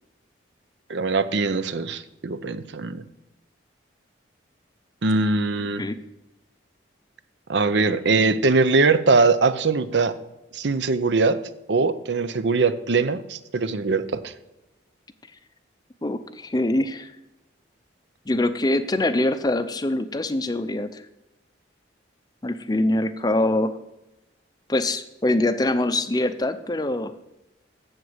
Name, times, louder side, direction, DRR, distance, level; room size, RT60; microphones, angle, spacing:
voice 1, 0.9-3.0 5.0-5.8 7.5-10.2 10.5-11.4 11.7-14.3, right 3 dB, 70° right, 13 dB, 0.6 m, -21 dB
voice 2, 16.0-17.1 18.3-21.1 22.4-23.8 24.7-27.1, left 1 dB, 20° left, 11 dB, 0.5 m, -24 dB
7.9 x 7.4 x 7.9 m, 0.95 s
head